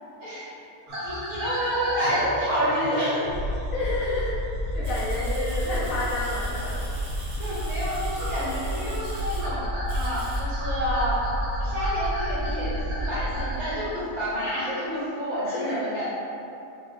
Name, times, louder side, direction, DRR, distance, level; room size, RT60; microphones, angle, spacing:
voice 1, 0.2-0.5 1.0-3.3 7.4-9.6 9.9-11.3 11.6-16.1, equal, 50° right, -9 dB, 1.5 m, -28 dB
sound 1, 0.9-7.3 7.6-13.9, equal, 65° right, 1.5 m, -38 dB
sound 2, 3.3-13.5, equal, 80° left, 1.3 m, -30 dB
voice 2, 3.7-4.4 4.7-6.8 15.5-15.8, left 2 dB, 60° left, -7 dB, 1.1 m, -30 dB
sound 3, 4.8-9.5 9.9-10.4, right 1 dB, 90° right, 1.7 m, -43 dB
4.8 x 2.3 x 4.3 m, 2.7 s
omnidirectional pair, 1.7 m